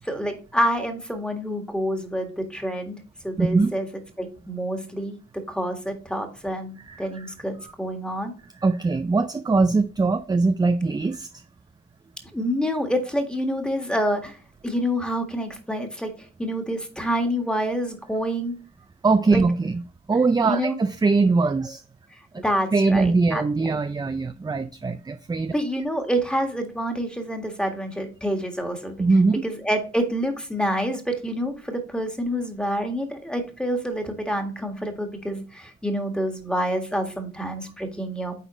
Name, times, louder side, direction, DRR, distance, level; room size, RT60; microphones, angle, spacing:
voice 1, 0.0-3.9 4.2-8.3 12.3-14.4 14.6-18.5 19.3-19.4 20.5-20.8 22.4-23.8 25.5-28.9 29.4-38.3, equal, 5° left, 1.7 m, -27 dB
voice 2, 3.4-3.7 6.9-7.3 7.6-7.7 8.6-11.4 19.0-19.8 20.1-21.8 22.3-22.4 22.7-25.5 29.0-29.4, right 3 dB, 15° right, 0.4 m, -22 dB
9.1 x 4.1 x 3.1 m
cardioid pair, 90°, 30 cm